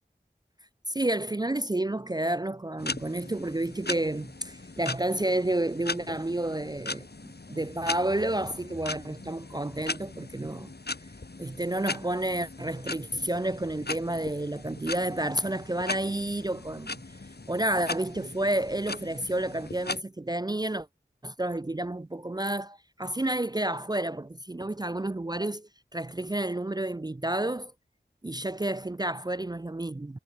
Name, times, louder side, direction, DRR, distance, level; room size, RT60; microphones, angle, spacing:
voice 1, 0.9-7.1 7.5-10.7 11.4-17.0 17.5-20.9 21.2-27.7 28.2-30.2, right 1 dB, 20° right, 0.4 m, -30 dB
sound 1, 2.8-20.0, left 3 dB, 60° left, 1.8 m, -39 dB
wide cardioid pair, 40°, 19 cm